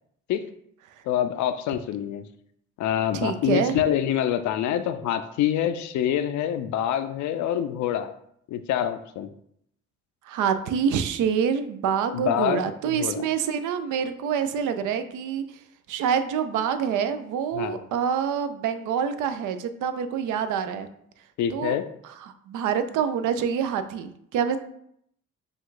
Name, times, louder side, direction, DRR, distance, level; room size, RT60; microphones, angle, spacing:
voice 1, 1.1-2.2 2.8-8.1 8.5-9.3 12.1-12.6 12.9-13.2 17.5-17.8 21.4-21.8, left 10 dB, 70° left, 10 dB, 0.4 m, -26 dB
voice 2, 3.1-3.8 10.3-15.4 15.9-20.9 21.5-21.7 22.2-24.6, right 7 dB, 80° right, 10 dB, 0.5 m, -26 dB
5.0 x 2.3 x 3.8 m, 0.70 s
cardioid pair, 90°, 30 cm